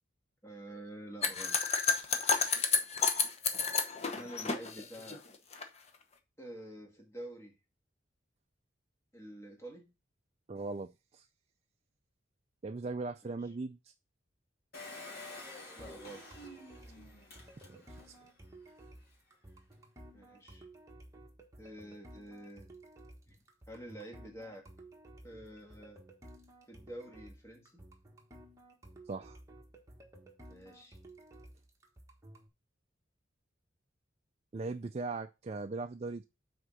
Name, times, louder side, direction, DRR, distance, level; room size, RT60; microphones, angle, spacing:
voice 1, 0.4-1.8 4.1-5.2 6.4-7.6 9.1-9.9 13.2-13.4 15.7-16.3 20.1-20.7 21.6-22.7 23.3-24.7 25.2-26.0 26.7-27.9 30.5-31.0, right 1 dB, 15° left, 1.6 m, -48 dB
sound 1, 1.2-5.6, left 5 dB, 30° left, 0.9 m, -31 dB
voice 2, 10.5-11.3 12.6-13.9 17.7-17.8 29.1-29.4 34.5-36.2, right 3 dB, 30° right, 0.4 m, -39 dB
Engine, 14.7-18.2 18.7-18.8 19.0-19.1, left 2 dB, 50° left, 2.6 m, -49 dB
sound 2, 15.8-32.5, right 1 dB, 15° right, 1.3 m, -55 dB
6.4 x 4.3 x 6.1 m
head